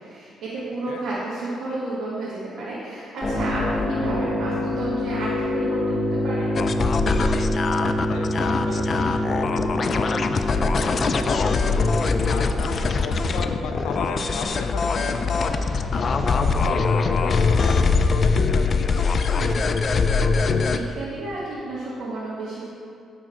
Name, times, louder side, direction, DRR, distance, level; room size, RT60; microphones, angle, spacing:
voice 1, 0.0-6.5 20.7-22.7, right 2 dB, 70° right, -8 dB, 1.4 m, -31 dB
sound 1, 3.2-14.5, left 1 dB, 25° left, 1.0 m, -27 dB
sound 2, 6.6-20.8, left 4 dB, 45° left, 0.3 m, -22 dB
voice 2, 7.6-10.2 10.6-15.7 16.2-19.8, left 5 dB, 90° left, 5 dB, 0.5 m, -37 dB
9.8 x 3.6 x 4.2 m, 2.6 s
cardioid pair, 90°, 0 cm